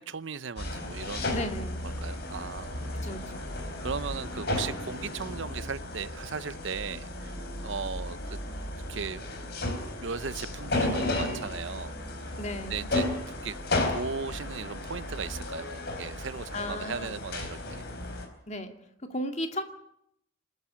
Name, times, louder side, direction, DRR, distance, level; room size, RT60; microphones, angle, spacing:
voice 1, 0.0-1.4 1.8-3.0 3.3-8.4 8.9-9.2 10.0-11.9 12.2-12.3 12.7-13.6 13.9-15.7 16.0-17.8, right 5 dB, 65° right, 16 dB, 0.7 m, -37 dB
sound 1, 0.6-18.2, left 2 dB, 50° left, 4.3 m, -34 dB
voice 2, 1.3-1.8 3.0-3.4 12.4-12.9 16.5-17.2 18.5-18.7 19.1-19.6, left 1 dB, 35° left, 6 dB, 2.2 m, -35 dB
26.5 x 10.5 x 9.9 m, 0.75 s
head